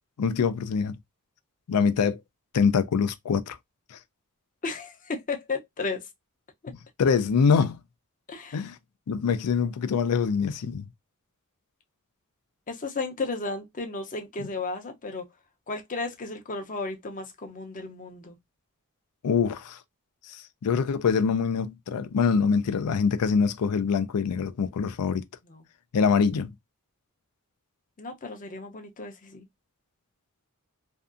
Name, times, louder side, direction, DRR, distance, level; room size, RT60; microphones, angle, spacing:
voice 1, 0.2-0.9 1.7-2.2 2.5-3.6 3.9-4.0 7.0-7.8 8.5-8.7 9.1-10.9 14.4-14.5 19.2-19.8 20.3-25.2 25.9-26.5, left 6 dB, 90° left, 0.4 m, -24 dB
voice 2, 4.6-6.0 8.3-8.6 12.7-15.2 15.7-18.4 25.5-25.6 28.0-29.4, left 3 dB, 35° left, 0.6 m, -34 dB
2.6 x 2.3 x 2.4 m
head